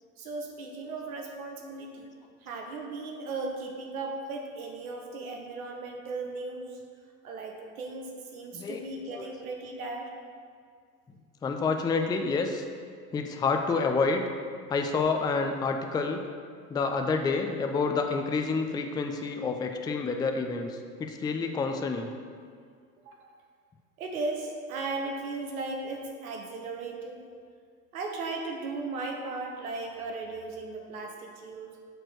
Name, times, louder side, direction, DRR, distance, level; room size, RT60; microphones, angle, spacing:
voice 1, 0.2-2.1 2.4-6.8 7.2-10.1 23.0-23.3 24.0-27.3 27.9-31.7, right 3 dB, 70° right, 2 dB, 0.9 m, -36 dB
voice 2, 11.4-12.6 13.1-14.2 14.7-16.2 16.7-22.1, left 4 dB, 10° left, 5 dB, 0.4 m, -28 dB
7.9 x 4.4 x 6.2 m, 2.1 s
figure-of-eight pair, 65°, 43 cm